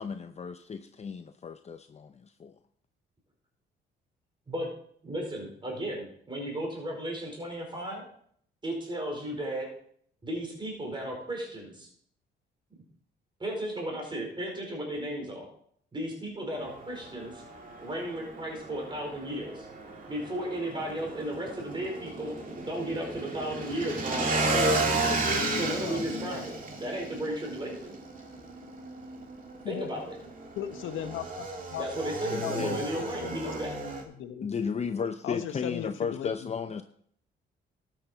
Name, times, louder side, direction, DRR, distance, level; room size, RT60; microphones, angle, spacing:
voice 1, 0.0-2.5 32.3-33.1 34.4-36.8, left 6 dB, 35° left, 8 dB, 0.6 m, -34 dB
voice 2, 5.0-8.0 8.6-9.7 10.2-11.9 13.4-15.5 15.9-17.4 17.8-19.7 20.1-22.3 22.6-24.8 25.5-28.0 29.7-30.2 31.8-33.8, right 1 dB, 25° right, 0 dB, 4.8 m, -35 dB
Motorcycle / Engine, 16.6-34.0, right 2 dB, 45° right, 2.4 m, -34 dB
voice 3, 25.0-26.4 29.6-29.9 30.6-31.9 32.3-32.8 33.1-34.7 35.2-36.3, left 10 dB, 85° left, 8 dB, 1.2 m, -37 dB
12.5 x 9.1 x 4.5 m, 0.64 s
cardioid pair, 90°, 20 cm